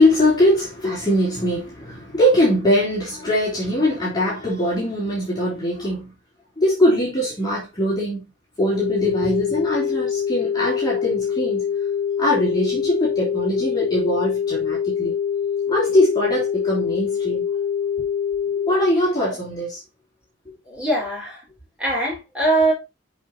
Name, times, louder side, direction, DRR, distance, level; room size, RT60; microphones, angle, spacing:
voice 1, 0.0-6.1 6.6-8.2 8.6-11.6 12.2-15.2 15.7-17.4 18.7-19.8, left 1 dB, 20° left, 3.4 m, -21 dB
sound 1, 8.7-18.7, left 7 dB, 50° left, 0.6 m, -24 dB
voice 2, 20.6-21.4 21.8-22.7, right 2 dB, 5° right, 4.5 m, -21 dB
8.2 x 5.4 x 2.7 m
head